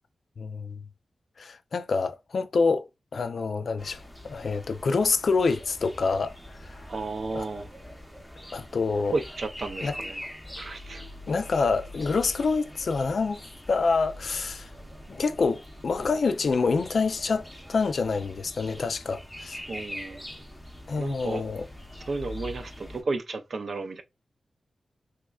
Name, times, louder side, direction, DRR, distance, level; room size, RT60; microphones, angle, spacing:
voice 1, 0.4-0.8 1.4-6.8 7.3-7.4 8.5-9.1 9.8-9.9 11.3-14.7 15.1-19.6 20.9-21.7, left 4 dB, 60° left, 0.4 m, -27 dB
sound 1, 3.8-23.0, left 1 dB, 5° left, 0.7 m, -43 dB
voice 2, 6.9-7.7 9.1-10.2 10.6-11.0 19.7-20.2 21.0-21.4 22.1-24.0, right 3 dB, 50° right, 0.5 m, -33 dB
3.5 x 3.1 x 2.3 m
wide cardioid pair, 180°, 0 cm